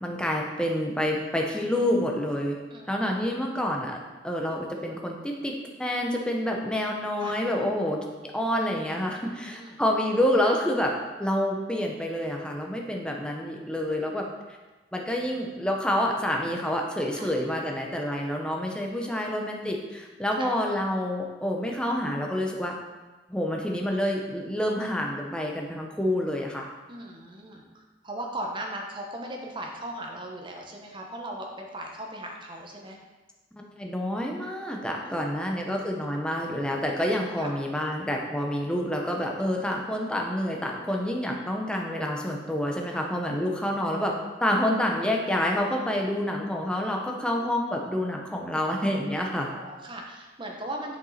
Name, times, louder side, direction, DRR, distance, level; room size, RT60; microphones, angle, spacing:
voice 1, 0.0-2.6 2.9-4.0 4.2-5.5 5.8-8.0 8.3-10.9 11.2-14.3 14.9-22.7 23.3-26.7 33.8-44.1 44.4-49.5, left 1 dB, 5° left, 0 dB, 0.7 m, -28 dB
voice 2, 2.7-3.3 7.2-7.4 9.1-9.8 17.2-17.3 18.7-19.3 20.4-20.5 26.9-33.0 35.0-35.4 37.4-37.5 40.9-41.0 42.9-43.0 47.2-47.5 49.4-51.0, right 1 dB, 25° right, 1 dB, 1.0 m, -39 dB
7.0 x 5.3 x 4.1 m, 1.2 s
head